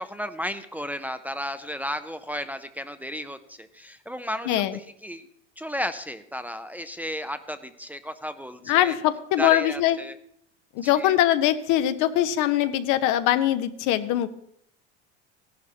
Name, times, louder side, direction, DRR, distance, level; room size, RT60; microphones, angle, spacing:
voice 1, 0.0-5.3 5.6-8.9 9.4-10.2 10.8-11.1, equal, 5° right, 9 dB, 0.7 m, -34 dB
voice 2, 4.5-4.8 8.7-10.0 10.7-14.3, left 12 dB, 60° left, 11 dB, 1.0 m, -22 dB
16.5 x 11.0 x 2.9 m, 0.72 s
hypercardioid pair, 85°, 35 cm